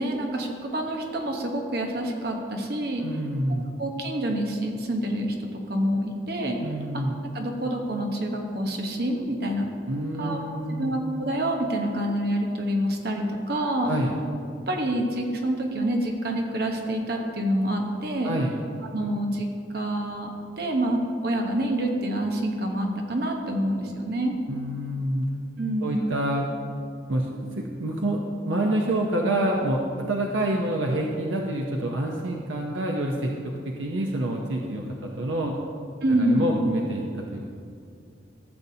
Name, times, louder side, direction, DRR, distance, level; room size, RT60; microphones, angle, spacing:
voice 1, 0.0-3.0 3.8-5.3 5.7-6.6 6.9-7.0 7.3-9.6 10.2-10.4 10.8-13.9 14.7-18.3 18.9-19.5 19.7-20.3 20.6-24.3 25.6-26.1 36.0-36.5, right 1 dB, 55° right, 2 dB, 1.0 m, -27 dB
voice 2, 3.0-3.7 6.6-7.1 9.9-11.0 13.8-14.1 18.2-18.6 24.5-25.3 25.8-26.5 27.1-34.9 35.1-35.6 36.1-37.5, right 1 dB, 90° right, 0 dB, 0.7 m, -27 dB
15.0 x 6.8 x 2.8 m, 2.3 s
head